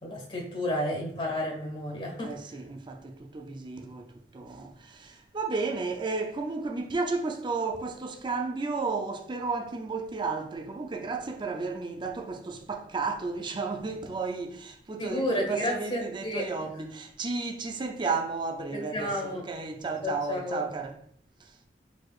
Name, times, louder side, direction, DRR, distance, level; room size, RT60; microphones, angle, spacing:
voice 1, 0.0-2.3 15.0-16.5 18.7-19.5 20.0-20.6, left 1 dB, 30° left, 1.5 m, -31 dB
voice 2, 2.2-21.0 21.4-21.6, right 4 dB, 25° right, 0.4 m, -33 dB
4.6 x 4.1 x 2.4 m
head